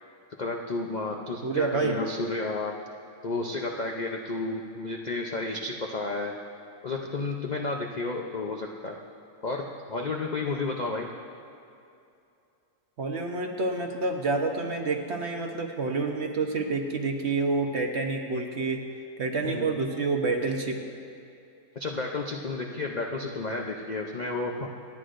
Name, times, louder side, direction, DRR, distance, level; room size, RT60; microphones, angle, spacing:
voice 1, 0.4-2.8 3.2-6.3 6.8-9.0 9.4-11.1 19.4-19.7 21.8-24.7, left 3 dB, 55° left, 0 dB, 0.4 m, -32 dB
voice 2, 1.4-2.0 13.0-18.8 19.2-20.8, right 3 dB, 50° right, 3 dB, 1.0 m, -28 dB
27.0 x 9.7 x 2.6 m, 2.6 s
omnidirectional pair, 1.7 m